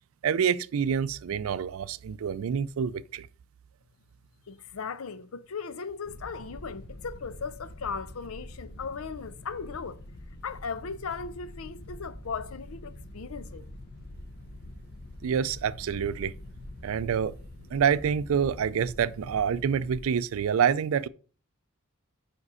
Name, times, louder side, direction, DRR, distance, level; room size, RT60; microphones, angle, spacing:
voice 1, 0.2-3.3 15.2-16.3 16.8-17.3 17.7-21.1, right 7 dB, 75° right, 0.4 m, -27 dB
voice 2, 4.5-10.0 10.4-13.6, left 5 dB, 85° left, 0.6 m, -37 dB
sound 1, 6.0-20.0, left 1 dB, 50° left, 0.7 m, -45 dB
5.3 x 4.9 x 4.7 m
head